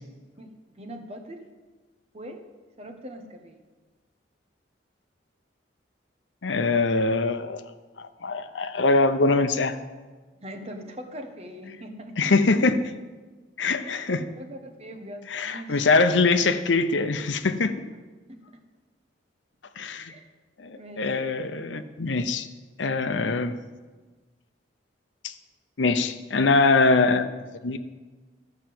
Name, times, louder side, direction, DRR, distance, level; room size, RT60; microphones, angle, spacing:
voice 1, 0.4-1.5 2.1-2.4 2.8-3.6 10.4-12.4 13.8-15.9 17.9-18.0 18.3-18.4 20.1-20.3 20.7-21.1, equal, 35° right, 5 dB, 1.2 m, -41 dB
voice 2, 6.4-7.6 8.0-9.8 12.2-12.8 13.6-14.2 15.3-17.9 19.8-20.1 20.6-22.5 22.8-23.5 25.2-25.3 25.8-27.3 27.6-27.8, left 3 dB, 80° left, 10 dB, 0.8 m, -23 dB
13.5 x 5.7 x 7.7 m, 1.3 s
head